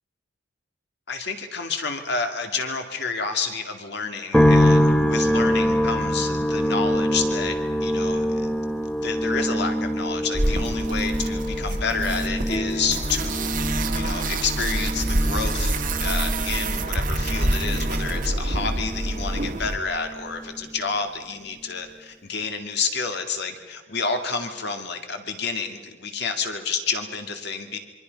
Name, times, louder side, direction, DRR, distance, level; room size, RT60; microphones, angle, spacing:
voice 1, 1.1-7.6 7.8-8.5 9.0-13.5 13.9-27.8, left 5 dB, 55° left, 5 dB, 2.3 m, -29 dB
sound 1, 4.3-19.6 19.9-20.7, equal, 5° left, 0.9 m, -25 dB
sound 2, 10.3-19.8, right 1 dB, 40° right, 1.6 m, -26 dB
Piano, 12.4-22.4, equal, 35° left, 1.2 m, -40 dB
26.5 x 24.0 x 5.3 m, 1.4 s
head